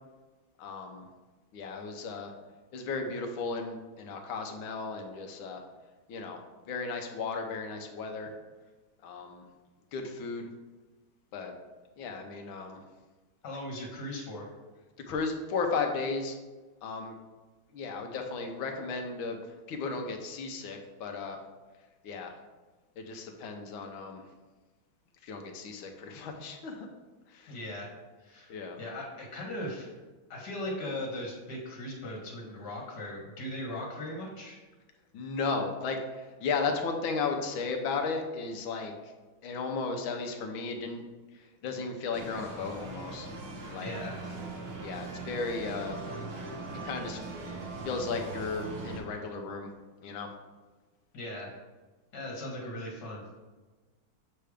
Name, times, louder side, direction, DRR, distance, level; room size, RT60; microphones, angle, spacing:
voice 1, 0.6-1.0 1.5-2.3 2.7-5.6 6.1-6.4 6.7-8.3 9.0-9.4 9.9-10.5 11.3-11.5 12.0-12.8 15.1-16.4 16.8-17.1 17.7-19.4 19.7-21.4 22.0-22.4 23.0-24.2 25.2-26.9 27.3-27.6 28.5-28.8 35.1-38.9 39.4-41.0 41.3-43.3 43.7-43.9 44.8-46.0 46.8-47.5 47.8-49.7 50.0-50.3, left 4 dB, 75° left, 4 dB, 1.6 m, -35 dB
voice 2, 13.4-14.5 27.5-27.9 28.2-30.0 30.3-34.6 43.8-44.2 51.1-51.6 52.1-53.4, left 1 dB, 55° left, -2 dB, 2.1 m, -38 dB
sound 1, 42.1-49.0, right 3 dB, 90° right, 2.0 m, -40 dB
7.9 x 3.4 x 4.9 m, 1.3 s
omnidirectional pair, 2.2 m